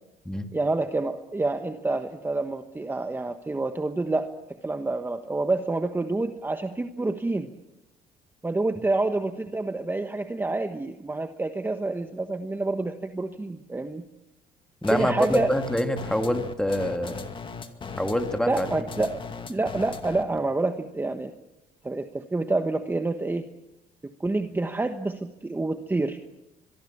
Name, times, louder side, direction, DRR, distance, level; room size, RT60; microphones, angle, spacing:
voice 1, 0.5-4.3 4.6-7.5 8.4-14.0 14.9-15.5 18.5-19.2 19.5-21.3 21.8-23.4 24.0-26.2, right 2 dB, 10° right, 8 dB, 1.3 m, -28 dB
sound 1, 14.8-20.4, left 5 dB, 30° left, 2.2 m, -38 dB
voice 2, 14.8-17.2 18.0-18.7, equal, 5° left, 6 dB, 2.3 m, -26 dB
23.5 x 23.0 x 7.3 m, 0.90 s
cardioid pair, 110°, 17 cm